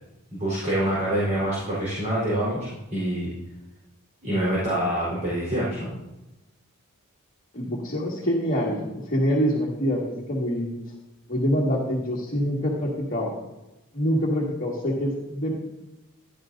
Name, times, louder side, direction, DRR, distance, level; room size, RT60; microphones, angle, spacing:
voice 1, 0.3-3.3 4.2-5.9, right 1 dB, 35° right, -9 dB, 3.9 m, -26 dB
voice 2, 7.5-10.7 11.3-13.3 13.9-15.5, equal, 40° left, -5 dB, 1.7 m, -25 dB
15.5 x 11.5 x 2.6 m, 1.0 s
head